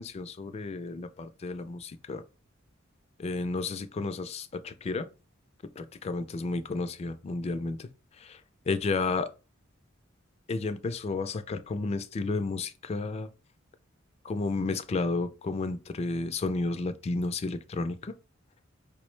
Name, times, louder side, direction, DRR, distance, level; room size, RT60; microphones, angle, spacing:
voice 1, 0.0-2.2 3.2-5.1 5.8-7.9 8.2-8.4 8.7-9.3 10.5-13.3 14.2-18.1, left 3 dB, 30° left, 0.3 m, -32 dB
4.8 x 2.0 x 3.1 m
head